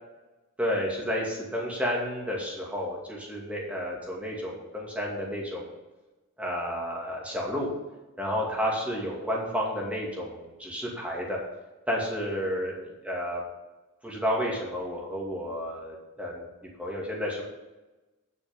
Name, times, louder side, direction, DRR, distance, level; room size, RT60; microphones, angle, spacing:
voice 1, 0.6-5.7 6.4-7.7 8.2-11.4 11.9-12.7 13.0-13.4 14.0-16.4 16.8-17.4, equal, 5° right, -3 dB, 2.5 m, -31 dB
10.0 x 6.3 x 5.4 m, 1.1 s
head